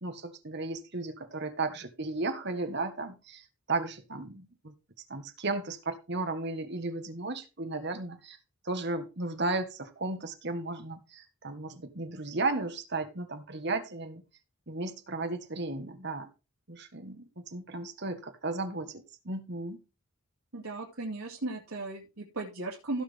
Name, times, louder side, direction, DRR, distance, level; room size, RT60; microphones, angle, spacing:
voice 1, 0.0-4.7 5.1-8.4 8.6-14.2 14.7-16.3 16.7-19.8, right 3 dB, 50° right, 1.5 m, -35 dB
voice 2, 20.5-23.0, right 2 dB, 90° right, 2.5 m, -36 dB
16.0 x 6.2 x 3.5 m
head